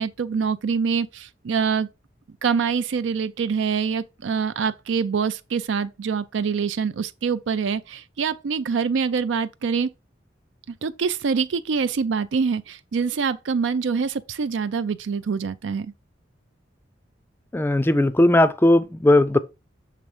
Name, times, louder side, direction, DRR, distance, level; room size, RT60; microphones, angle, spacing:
voice 1, 0.0-1.9 2.4-9.9 10.8-15.9, right 5 dB, 85° right, 0.4 m, -25 dB
voice 2, 17.5-19.4, left 1 dB, 10° left, 0.4 m, -17 dB
6.7 x 3.4 x 4.9 m
head